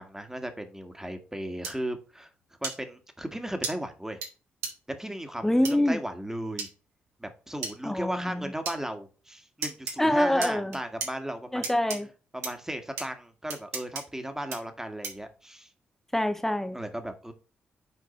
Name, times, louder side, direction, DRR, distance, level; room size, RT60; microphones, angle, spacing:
voice 1, 0.0-2.3 2.6-4.2 4.9-6.7 7.2-11.7 12.3-15.7 16.7-17.3, right 1 dB, 10° right, 1.7 m, -36 dB
sound 1, 1.6-1.7 2.6-2.8 3.6-3.7 4.2-4.3 4.6-4.7 5.6-5.7 6.6-6.7 7.6-7.7 8.7-8.8 9.6-9.9 10.4-11.1 11.6-12.0 12.4-12.5 13.0-13.1 13.5-14.0 14.5-14.6 15.0-15.3, right 4 dB, 75° right, 2.1 m, -33 dB
voice 2, 5.4-6.0 7.8-8.5 10.0-10.7 11.5-12.1 16.1-16.8, left 1 dB, 5° left, 1.0 m, -25 dB
7.0 x 4.5 x 4.2 m
hypercardioid pair, 40°, 5 cm